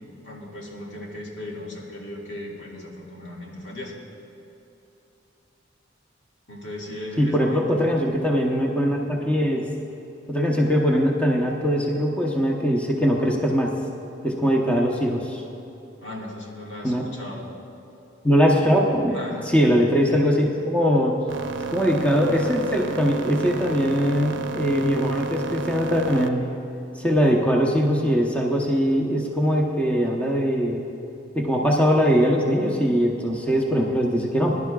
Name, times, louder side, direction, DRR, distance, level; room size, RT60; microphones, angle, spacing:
voice 1, 0.2-4.0 6.5-7.8 16.0-17.5 19.1-19.7, left 1 dB, 80° left, -3 dB, 2.0 m, -36 dB
voice 2, 7.2-9.6 10.3-13.7 14.2-15.4 16.8-17.0 18.2-19.2 19.5-21.1 21.7-26.5 27.0-30.8 31.3-34.6, equal, 5° left, -2 dB, 0.8 m, -21 dB
sound 1, 21.3-26.3, right 4 dB, 80° right, 0.6 m, -32 dB
20.5 x 11.0 x 2.3 m, 3.0 s
head